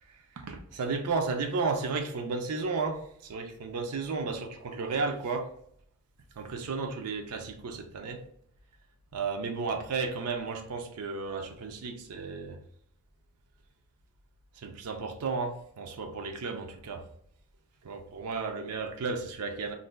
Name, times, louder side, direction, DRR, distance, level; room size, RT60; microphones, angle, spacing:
voice 1, 0.1-5.5 6.4-8.2 9.1-12.6 14.6-17.1 17.8-19.7, right 4 dB, 85° right, 0.5 m, -33 dB
2.5 x 2.1 x 3.2 m
head